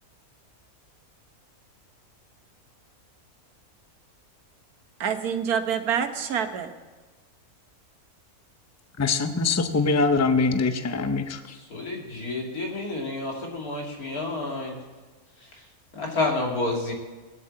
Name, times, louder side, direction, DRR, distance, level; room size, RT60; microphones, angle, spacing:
voice 1, 5.0-6.7, right 8 dB, 90° right, 7 dB, 1.6 m, -26 dB
voice 2, 9.0-11.4, left 3 dB, 20° left, 9 dB, 0.5 m, -23 dB
voice 3, 11.7-14.8 15.9-16.9, left 2 dB, 80° left, 0 dB, 3.0 m, -29 dB
18.5 x 8.2 x 7.6 m, 1.3 s
omnidirectional pair, 1.5 m